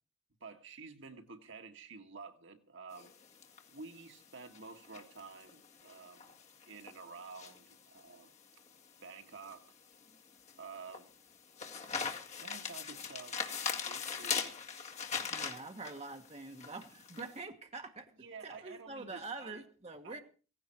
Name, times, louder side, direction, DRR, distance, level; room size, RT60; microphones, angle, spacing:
voice 1, 0.4-3.1 3.7-6.4 6.7-8.6 9.0-9.8 10.6-11.2 12.4-13.4 13.8-14.5 18.2-19.6 20.0-20.2, right 4 dB, 60° right, 1.6 m, -50 dB
sound 1, 2.9-17.3, left 6 dB, 35° left, 2.0 m, -41 dB
voice 2, 15.3-18.1 18.4-20.2, right 3 dB, 30° right, 1.5 m, -45 dB
17.0 x 16.0 x 4.5 m
head